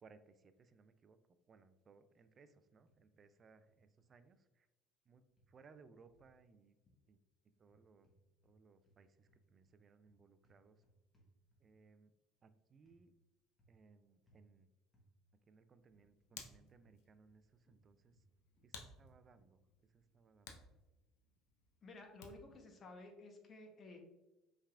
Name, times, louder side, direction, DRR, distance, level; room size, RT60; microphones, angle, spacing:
voice 1, 0.0-1.2 1.5-4.7 5.1-6.8 7.0-7.2 7.6-8.1 8.4-10.8 11.6-12.1 12.4-13.1 13.7-14.7 15.5-18.2 18.6-20.6, right 4 dB, 35° right, 11 dB, 0.4 m, -65 dB
sound 1, 2.9-3.4 3.7-4.1 5.4-6.4 7.6-8.6 8.8-11.9 12.9-13.0 13.6-13.9 14.3-14.5 14.9-15.1 15.9-17.4 17.6-19.6, right 1 dB, 15° left, 1.1 m, -73 dB
Hands, 15.7-22.6, left 5 dB, 85° left, 0.7 m, -59 dB
voice 2, 21.8-24.0, left 2 dB, 35° left, 4 dB, 0.9 m, -54 dB
5.4 x 3.5 x 2.4 m, 1.0 s
cardioid pair, 115°, 0 cm